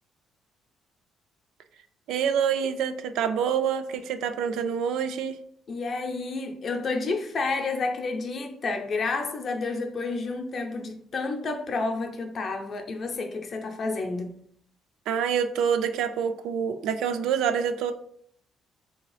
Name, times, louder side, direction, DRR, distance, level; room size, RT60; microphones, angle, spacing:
voice 1, 2.1-5.4 15.1-17.9, right 7 dB, 85° right, 0.4 m, -26 dB
voice 2, 5.7-14.3, left 3 dB, 35° left, 0.5 m, -30 dB
3.7 x 2.8 x 3.1 m
cardioid pair, 170°, 0 cm